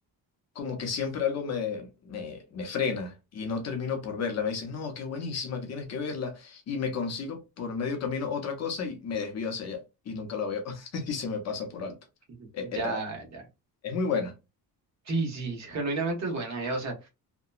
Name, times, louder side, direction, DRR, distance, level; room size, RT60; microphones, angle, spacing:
voice 1, 0.5-12.0 12.5-13.0 13.8-14.3, left 5 dB, 45° left, 0.6 m, -32 dB
voice 2, 12.4-13.4 15.0-17.1, right 3 dB, 45° right, 1.1 m, -32 dB
2.8 x 2.1 x 2.3 m
cardioid pair, 175°, 38 cm